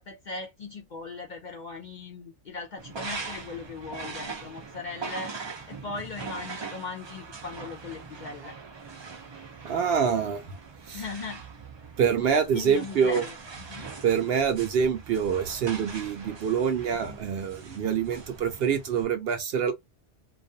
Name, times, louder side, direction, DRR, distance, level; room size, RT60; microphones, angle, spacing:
voice 1, 0.0-5.3 5.7-8.6 10.9-11.4 12.5-13.9, left 4 dB, 55° left, 0.5 m, -39 dB
sound 1, 2.8-19.0, right 4 dB, 50° right, 0.3 m, -41 dB
voice 2, 9.6-10.4 10.9-11.0 12.0-13.2 14.0-19.7, right 7 dB, 65° right, 0.7 m, -25 dB
2.4 x 2.2 x 2.6 m
omnidirectional pair, 1.2 m